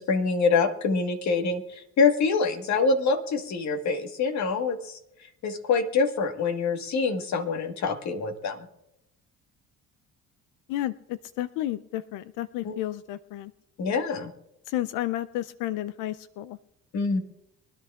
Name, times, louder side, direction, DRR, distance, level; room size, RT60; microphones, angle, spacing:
voice 1, 0.0-5.0 5.4-8.7 12.6-12.7 13.8-14.3 16.9-17.2, left 4 dB, 60° left, 6 dB, 1.5 m, -25 dB
voice 2, 10.7-13.5 14.7-16.6, left 14 dB, 80° left, 15 dB, 0.5 m, -32 dB
24.0 x 10.5 x 2.4 m, 0.83 s
supercardioid pair, 80°, 31 cm